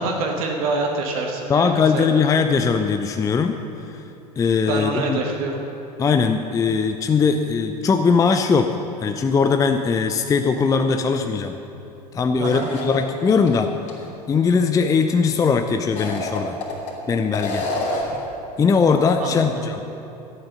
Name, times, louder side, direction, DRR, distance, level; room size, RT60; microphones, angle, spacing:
voice 1, 0.0-2.1 4.7-5.6 12.4-12.7 19.2-19.5, right 3 dB, 60° right, 1 dB, 1.4 m, -26 dB
voice 2, 1.5-3.5 3.9-4.0 4.4-5.2 6.0-8.8 9.0-11.5 12.1-13.7 14.3-16.6 17.1-17.7 18.6-19.8, left 5 dB, 15° left, 6 dB, 0.5 m, -20 dB
sound 1, 12.4-13.5 13.9-14.0 15.8-16.9 17.3-18.2, left 2 dB, 35° left, 3.0 m, -28 dB
12.5 x 8.8 x 6.4 m, 2.8 s
figure-of-eight pair, 75°, 21 cm